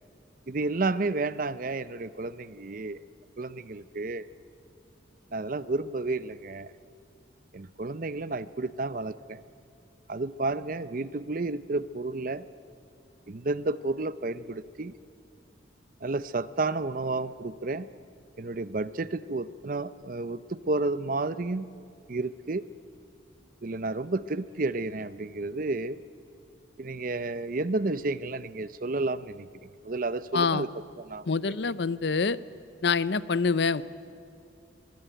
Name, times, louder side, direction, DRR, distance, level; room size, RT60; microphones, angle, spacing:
voice 1, 0.5-3.0 3.4-4.3 5.3-6.7 7.5-9.4 10.1-12.4 13.3-14.9 16.0-17.9 18.4-21.7 22.1-22.6 23.6-26.0 26.8-29.5 29.8-30.7 31.0-31.2, right 3 dB, 45° right, 15 dB, 0.6 m, -31 dB
voice 2, 30.3-30.7 31.3-32.4 32.8-33.8, left 4 dB, 60° left, 17 dB, 0.6 m, -26 dB
24.0 x 21.0 x 9.1 m, 2.5 s
head